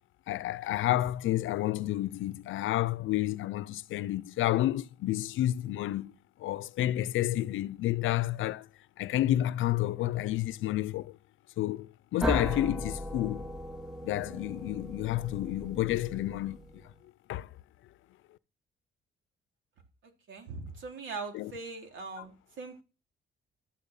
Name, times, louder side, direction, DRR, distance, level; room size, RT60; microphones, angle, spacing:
voice 1, 0.3-6.1 6.4-8.7 9.0-11.2 11.6-13.5 14.0-16.6 17.3-17.5 21.3-21.5, left 14 dB, 80° left, 0.6 m, -30 dB
sound 1, 12.2-16.9, equal, 5° right, 1.2 m, -37 dB
voice 2, 20.0-22.8, right 4 dB, 75° right, 3.7 m, -41 dB
13.0 x 7.1 x 7.5 m
cardioid pair, 90°, 20 cm